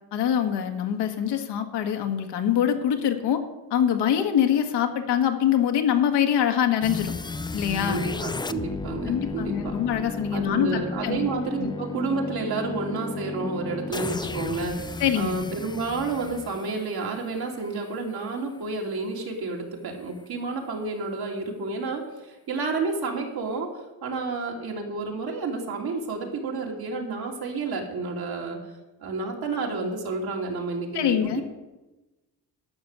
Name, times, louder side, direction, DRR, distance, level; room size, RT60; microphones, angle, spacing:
voice 1, 0.1-3.4 3.7-7.1 7.5-8.0 9.0-11.3 11.6-11.7 15.0-15.3 30.9-31.4, left 9 dB, 85° left, 5 dB, 1.6 m, -24 dB
sound 1, 6.8-17.8, left 3 dB, 10° left, 0.4 m, -34 dB
voice 2, 7.9-9.8 10.3-28.6 29.0-31.4, right 3 dB, 65° right, 1 dB, 2.7 m, -30 dB
11.5 x 6.1 x 8.1 m, 1.1 s
cardioid pair, 100°, 40 cm